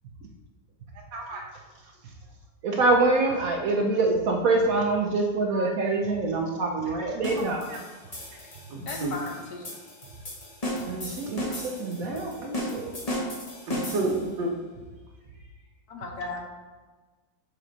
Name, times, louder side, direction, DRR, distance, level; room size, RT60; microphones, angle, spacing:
voice 1, 1.1-1.4 5.5-5.9 7.7-7.8 8.7-9.1 13.7-14.5, right 2 dB, 90° right, 0 dB, 1.8 m, -31 dB
voice 2, 2.6-7.7 10.9-13.0, right 3 dB, 65° right, 1 dB, 0.9 m, -25 dB
sound 1, 7.2-14.3, equal, 30° left, 0.8 m, -35 dB
voice 3, 8.9-9.7 15.9-16.4, left 3 dB, 65° left, 2 dB, 1.2 m, -36 dB
6.2 x 4.3 x 3.9 m, 1.3 s
omnidirectional pair, 2.0 m